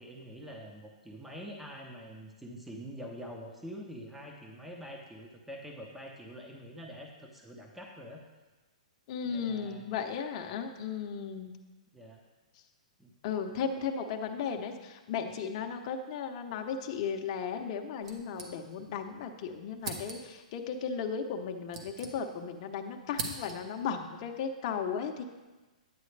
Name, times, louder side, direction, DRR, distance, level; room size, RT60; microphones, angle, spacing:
voice 1, 0.0-8.2 9.2-9.9 11.9-12.2 13.0-13.1, equal, 5° right, 1 dB, 0.8 m, -45 dB
voice 2, 9.1-11.6 13.2-25.2, left 6 dB, 40° left, 4 dB, 0.8 m, -35 dB
sound 1, 18.0-19.0 19.3-19.4 19.8-20.5 21.3-22.6 22.8-23.8, right 3 dB, 55° right, 1.4 m, -42 dB
9.4 x 8.9 x 3.3 m, 1.2 s
hypercardioid pair, 150°, 4 cm